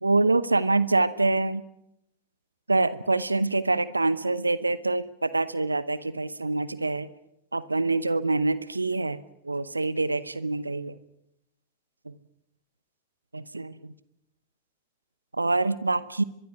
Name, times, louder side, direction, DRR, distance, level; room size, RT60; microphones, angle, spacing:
voice 1, 0.0-1.6 2.7-7.1 7.5-9.2 9.4-11.0 12.1-12.2 13.3-13.9 15.3-16.2, right 3 dB, 80° right, 17 dB, 0.8 m, -25 dB
23.5 x 22.5 x 6.3 m, 0.78 s
figure-of-eight pair, 90°, 0 cm